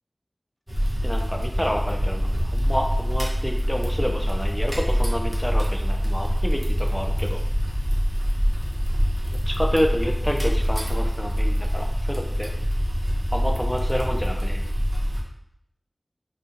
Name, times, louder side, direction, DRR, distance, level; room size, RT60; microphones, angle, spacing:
sound 1, 0.7-15.2, equal, 30° right, 0.8 m, -24 dB
voice 1, 1.0-7.4 9.5-12.5 13.3-14.6, equal, ahead, 2 dB, 0.5 m, -29 dB
2.8 x 2.4 x 3.7 m, 0.74 s
wide cardioid pair, 45°, 0 cm